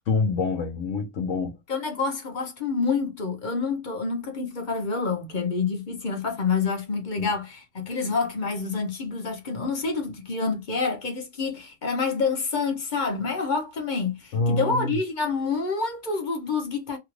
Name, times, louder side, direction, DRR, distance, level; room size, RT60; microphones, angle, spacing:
voice 1, 0.1-1.6 7.2-7.3 14.3-14.9, left 3 dB, 70° left, 1.0 m, -26 dB
voice 2, 1.7-17.0, left 4 dB, 40° left, 0.9 m, -27 dB
2.9 x 2.3 x 3.1 m
omnidirectional pair, 1.4 m